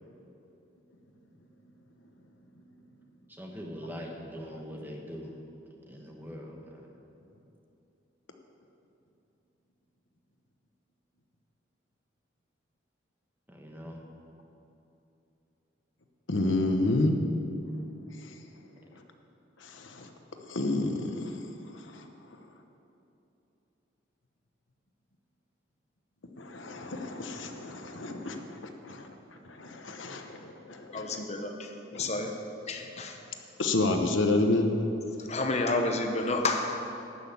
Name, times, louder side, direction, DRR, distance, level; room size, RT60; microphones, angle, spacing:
voice 1, 3.3-5.3 5.9-6.9 13.5-14.0, equal, 10° right, 0 dB, 1.2 m, -42 dB
voice 2, 16.3-17.2 18.3-18.4 19.6-20.1 20.4-21.4 21.8-22.0 26.4-29.1 29.4-30.4 30.7-31.2 31.9-32.1 33.6-34.7, left 2 dB, 80° left, 5 dB, 1.0 m, -29 dB
voice 3, 30.9-32.3 32.7-33.2 35.2-36.8, left 2 dB, 35° left, 4 dB, 0.8 m, -30 dB
12.5 x 6.2 x 8.5 m, 2.9 s
head